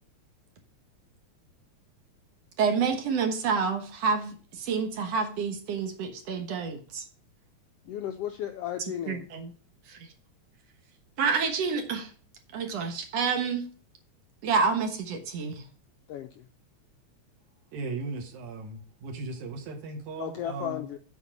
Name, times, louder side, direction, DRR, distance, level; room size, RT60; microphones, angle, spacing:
voice 1, 2.6-7.1 9.1-9.5 9.9-10.1 11.2-12.1 12.5-13.7 14.4-15.6, right 5 dB, 65° right, 2.3 m, -28 dB
voice 2, 7.8-9.3 16.1-16.5 20.2-21.0, left 11 dB, 75° left, 1.4 m, -34 dB
voice 3, 17.7-20.9, right 3 dB, 85° right, 2.8 m, -37 dB
8.2 x 4.5 x 7.3 m
omnidirectional pair, 3.3 m